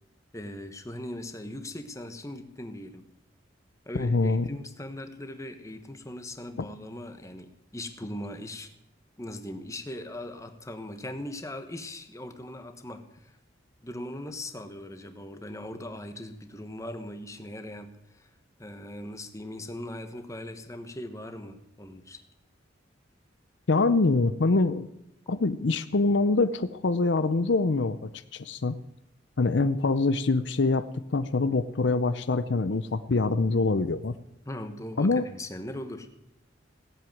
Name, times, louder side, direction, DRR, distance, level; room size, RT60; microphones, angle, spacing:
voice 1, 0.3-3.0 3.9-8.7 9.2-13.4 13.8-18.3 18.6-22.2 34.4-36.1, left 1 dB, 15° left, 7 dB, 1.3 m, -39 dB
voice 2, 3.9-4.5 6.6-6.7 23.7-24.9 25.3-28.8 29.4-34.1 35.0-35.3, left 3 dB, 65° left, 12 dB, 0.6 m, -25 dB
17.0 x 7.9 x 9.1 m, 0.85 s
head